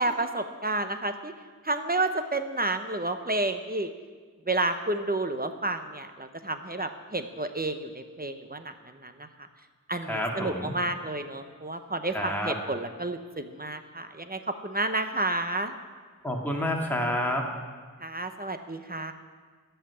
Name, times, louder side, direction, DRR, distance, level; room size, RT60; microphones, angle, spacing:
voice 1, 0.0-1.3 1.6-3.9 4.5-9.3 9.9-15.8 18.0-19.1, right 2 dB, 30° right, 8 dB, 0.9 m, -30 dB
voice 2, 10.1-10.7 12.1-12.5 16.2-17.5, left 1 dB, 5° left, -1 dB, 2.3 m, -29 dB
14.0 x 5.8 x 9.7 m, 1.5 s
wide cardioid pair, 65°, 32 cm